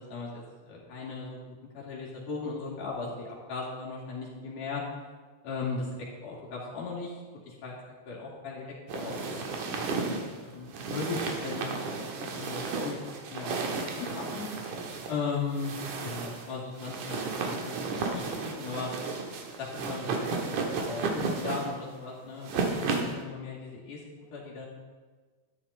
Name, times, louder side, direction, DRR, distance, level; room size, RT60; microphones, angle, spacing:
voice 1, 0.0-1.4 1.7-4.8 5.4-7.1 7.5-7.8 8.1-9.8 10.1-11.6 12.2-13.0 13.3-14.5 15.1-15.7 16.0-18.9 19.6-24.7, left 4 dB, 80° left, -4 dB, 4.3 m, -37 dB
sound 1, 8.9-23.2, right 4 dB, 75° right, 2.8 m, -33 dB
13.0 x 12.0 x 4.2 m, 1.4 s
omnidirectional pair, 3.5 m